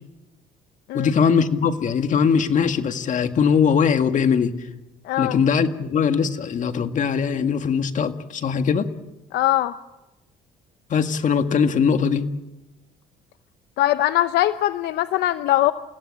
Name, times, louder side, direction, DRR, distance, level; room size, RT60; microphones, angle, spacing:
voice 1, 0.9-4.5 5.2-8.9 10.9-12.3, left 6 dB, 50° left, 8 dB, 1.9 m, -21 dB
voice 2, 5.0-5.4 9.3-9.7 13.8-15.7, left 14 dB, 80° left, 12 dB, 0.8 m, -21 dB
29.5 x 16.5 x 8.7 m, 1.0 s
cardioid pair, 110°, 17 cm